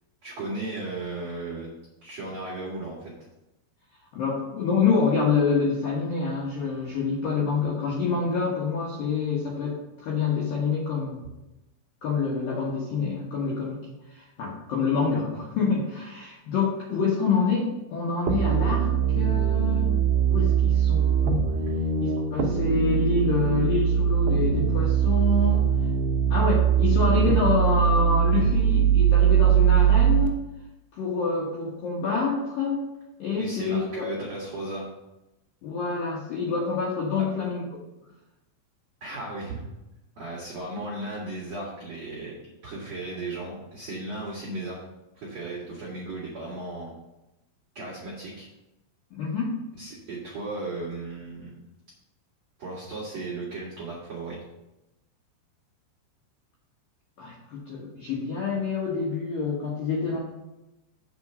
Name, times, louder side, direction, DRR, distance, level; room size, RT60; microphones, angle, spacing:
voice 1, 0.2-1.7 2.0-3.1 33.4-34.9 37.2-37.3 39.0-39.6 40.1-42.3 42.6-44.8 45.1-46.9 47.7-48.5 49.7-51.7 52.6-54.4, right 2 dB, 65° right, -6 dB, 1.6 m, -35 dB
voice 2, 4.1-11.2 12.0-13.8 14.1-19.9 20.3-21.5 22.0-25.7 26.3-30.3 30.9-32.8 33.2-34.1 35.6-37.6 49.1-49.6 57.2-60.2, left 4 dB, 75° left, -4 dB, 2.1 m, -27 dB
sound 1, 18.3-30.3, right 8 dB, 85° right, 2.1 m, -21 dB
8.0 x 4.9 x 6.6 m, 0.96 s
omnidirectional pair, 5.9 m